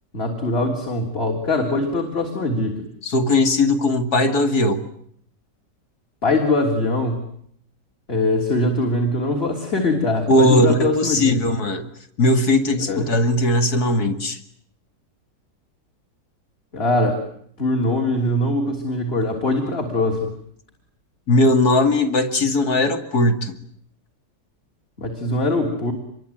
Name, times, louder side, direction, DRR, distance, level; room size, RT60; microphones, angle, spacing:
voice 1, 0.1-2.8 6.2-7.2 8.1-11.4 12.9-13.0 16.7-17.2 17.6-20.3 25.0-25.9, left 2 dB, 35° left, 2 dB, 3.7 m, -22 dB
voice 2, 3.0-4.8 10.3-11.9 12.2-14.4 21.3-23.6, left 1 dB, 60° left, 7 dB, 2.8 m, -18 dB
26.0 x 23.0 x 9.1 m, 0.67 s
omnidirectional pair, 1.9 m